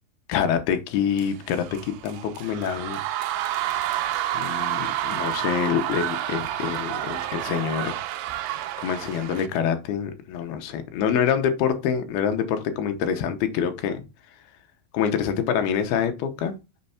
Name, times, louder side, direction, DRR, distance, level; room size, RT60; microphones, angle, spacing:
voice 1, 0.3-3.0 4.3-8.0 8.8-14.0 14.9-16.6, left 8 dB, 80° left, 2.7 m, -26 dB
sound 1, 1.2-9.5, right 13 dB, 85° right, 2.7 m, -29 dB
6.6 x 3.2 x 5.7 m
omnidirectional pair, 4.5 m